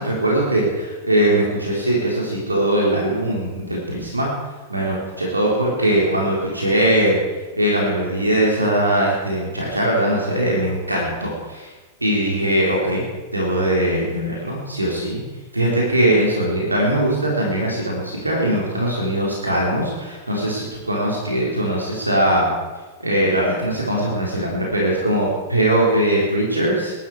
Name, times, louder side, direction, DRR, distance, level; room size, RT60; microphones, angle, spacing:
voice 1, 0.0-4.3 4.7-7.2 7.6-11.7 12.0-13.0 13.3-15.2 15.5-22.5 23.0-26.9, right 1 dB, 90° right, -3 dB, 3.6 m, -20 dB
19.0 x 12.5 x 4.7 m, 1.2 s
figure-of-eight pair, 95°, 0 cm